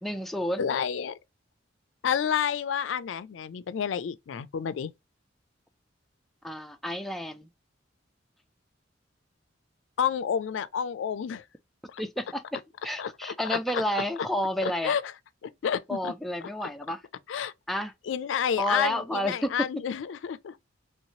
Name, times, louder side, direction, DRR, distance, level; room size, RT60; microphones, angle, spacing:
voice 1, 0.0-0.7 6.4-7.5 12.0-14.9 15.9-17.0 17.7-17.9 18.6-19.7, equal, ahead, 0.3 m, -30 dB
voice 2, 0.6-1.2 2.0-4.9 10.0-11.4 11.9-12.0 13.0-13.8 14.6-15.0 15.4-16.1 17.3-17.5 18.1-20.6, left 8 dB, 80° left, 0.4 m, -30 dB
3.1 x 3.0 x 2.7 m
head